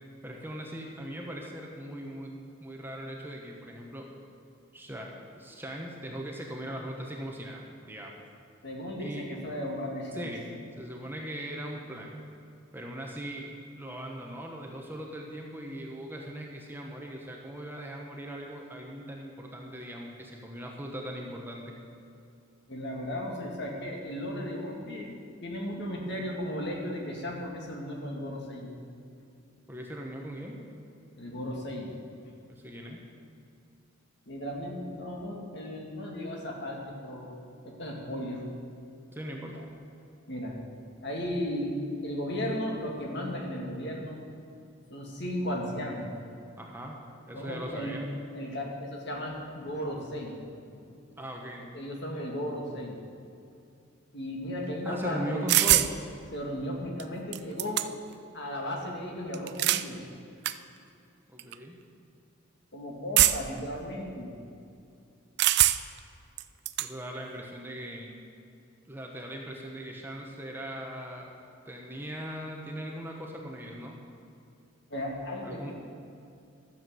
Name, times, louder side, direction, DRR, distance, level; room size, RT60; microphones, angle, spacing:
voice 1, 0.2-2.3 2.6-4.1 4.7-8.2 9.0-9.3 10.1-10.4 10.8-12.1 12.7-13.5 13.8-21.7 29.7-30.7 32.5-33.0 39.1-39.6 46.6-48.1 51.2-51.7 54.8-56.0 61.3-61.8 66.8-68.2 68.9-71.4 71.7-74.0 75.4-75.7, equal, 10° right, 0 dB, 1.0 m, -39 dB
voice 2, 8.6-10.6 22.7-25.1 25.4-28.7 31.2-32.0 34.3-37.4 37.6-38.4 39.5-39.6 40.3-40.6 41.0-41.7 42.0-44.2 44.9-46.1 47.3-48.0 48.3-50.4 50.7-50.8 51.7-53.0 54.1-55.6 56.3-57.8 58.3-60.0 62.7-64.3 74.9-75.7, equal, 55° left, 0 dB, 2.1 m, -35 dB
sound 1, 55.5-55.9 57.0-57.1 57.3-58.1 59.3-59.9 60.4-60.6 61.4-61.5 63.2-63.6 65.4-66.0 66.4-66.9, right 14 dB, 55° right, 0.4 m, -23 dB
12.5 x 7.3 x 7.7 m, 2.5 s
head